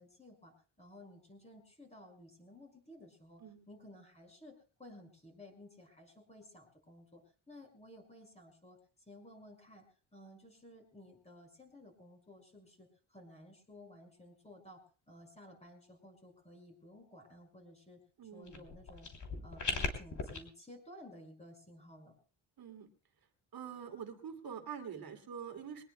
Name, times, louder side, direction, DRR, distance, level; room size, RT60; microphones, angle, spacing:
voice 1, 0.0-7.2 7.5-8.8 9.1-9.8 10.1-18.0 18.3-19.1 19.4-22.2, left 1 dB, 15° left, 2 dB, 5.4 m, -55 dB
voice 2, 18.2-18.6 22.6-22.9 23.5-25.8, right 7 dB, 50° right, 6 dB, 2.6 m, -45 dB
sound 1, 18.5-20.4, left 4 dB, 40° left, 3.0 m, -38 dB
23.0 x 19.5 x 2.2 m, 0.36 s
cardioid pair, 130°, 46 cm